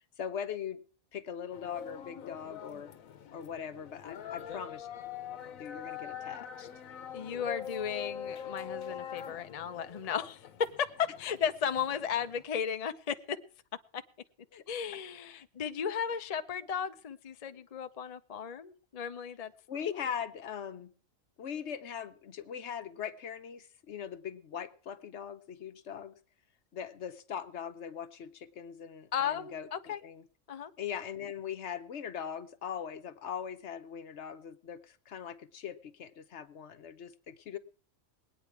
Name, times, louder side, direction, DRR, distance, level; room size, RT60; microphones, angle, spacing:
voice 1, 0.2-0.8 1.1-2.9 3.3-4.9 5.6-6.7 14.5-14.6 19.7-20.9 21.4-26.2 26.7-29.7 30.0-30.2 30.8-37.6, left 8 dB, 60° left, 11 dB, 1.1 m, -40 dB
sound 1, 1.5-12.4, left 8 dB, 85° left, 1.3 m, -44 dB
voice 2, 7.1-10.5 10.8-13.4 13.9-14.0 14.7-19.5 29.1-30.0 30.5-30.7, left 8 dB, 40° left, 9 dB, 0.6 m, -35 dB
20.0 x 9.2 x 4.7 m, 0.43 s
omnidirectional pair, 1.4 m